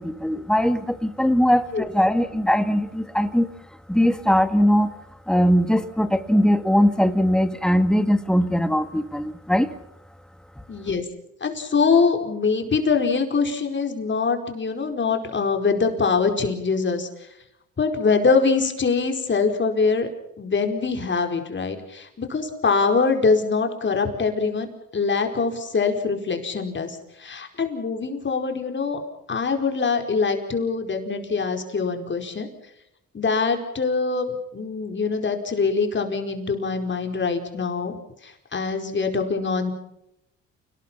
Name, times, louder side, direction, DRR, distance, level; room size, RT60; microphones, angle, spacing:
voice 1, 0.0-3.5 3.9-4.9 5.3-9.7, equal, ahead, 10 dB, 1.9 m, -20 dB
voice 2, 10.7-11.0 11.4-17.1 17.8-20.1 20.4-29.0 29.3-32.5 33.1-37.9 38.2-39.7, left 4 dB, 40° left, 4 dB, 4.9 m, -23 dB
29.0 x 19.5 x 5.8 m, 0.82 s
cardioid pair, 90°, 30 cm